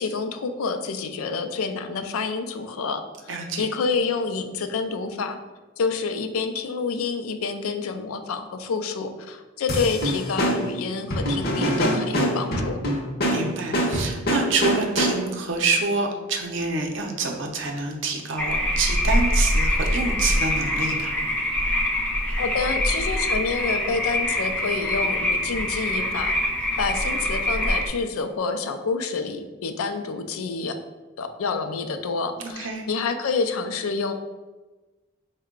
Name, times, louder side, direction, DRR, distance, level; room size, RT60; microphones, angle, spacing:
voice 1, 0.0-5.4 5.8-12.8 22.4-26.4 26.8-30.8 31.2-34.1, left 4 dB, 90° left, 8 dB, 0.4 m, -28 dB
voice 2, 3.3-3.7 13.2-21.1 32.4-32.8, right 3 dB, 60° right, 2 dB, 0.5 m, -27 dB
sound 1, 9.7-15.5, equal, 45° left, 0.7 m, -25 dB
sound 2, 18.4-27.9, left 1 dB, 5° left, 0.4 m, -24 dB
4.5 x 2.1 x 3.6 m, 1.2 s
head